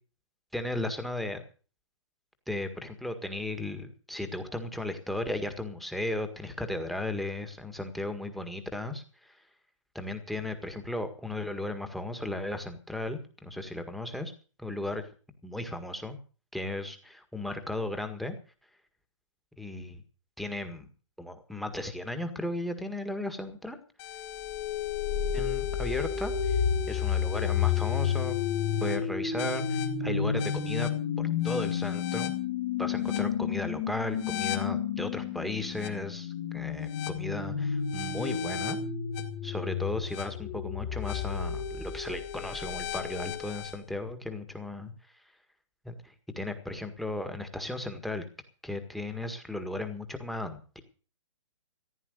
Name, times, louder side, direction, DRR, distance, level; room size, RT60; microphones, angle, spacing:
voice 1, 0.5-1.4 2.5-9.4 10.0-14.3 14.6-15.0 15.4-16.2 16.5-18.4 19.6-20.0 20.4-20.9 21.2-23.8 25.3-26.6 26.9-28.4 28.8-30.9 31.2-32.3 32.8-38.8 39.4-44.9 45.9-48.2 48.6-50.8, left 1 dB, ahead, 7 dB, 1.8 m, -35 dB
sound 1, 24.0-43.7, left 8 dB, 35° left, 2.5 m, -31 dB
15.0 x 10.5 x 6.6 m, 0.39 s
hypercardioid pair, 140°, 16 cm